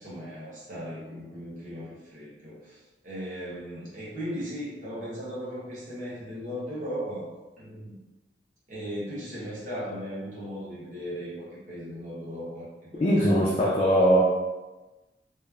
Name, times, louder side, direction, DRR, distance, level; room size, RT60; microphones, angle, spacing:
voice 1, 0.0-2.8 3.0-7.3 7.6-8.0 8.7-13.7, equal, 45° right, -8 dB, 0.8 m, -37 dB
voice 2, 13.0-14.2, equal, 35° left, -5 dB, 0.3 m, -21 dB
3.0 x 2.0 x 2.3 m, 1.2 s
head